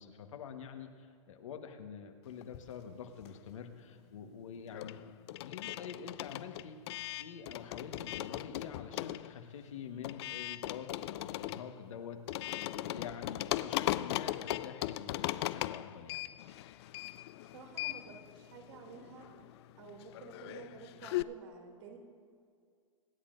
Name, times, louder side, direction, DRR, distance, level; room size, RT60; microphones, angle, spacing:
voice 1, 0.0-6.8 7.2-16.2, left 7 dB, 75° left, 5 dB, 1.3 m, -47 dB
sound 1, 2.4-3.7 3.9-21.2, left 15 dB, 55° left, 0.4 m, -39 dB
voice 2, 17.5-19.3 19.8-22.0, right 5 dB, 60° right, 2 dB, 2.7 m, -51 dB
25.5 x 10.0 x 2.6 m, 2.2 s
hypercardioid pair, 110°, 17 cm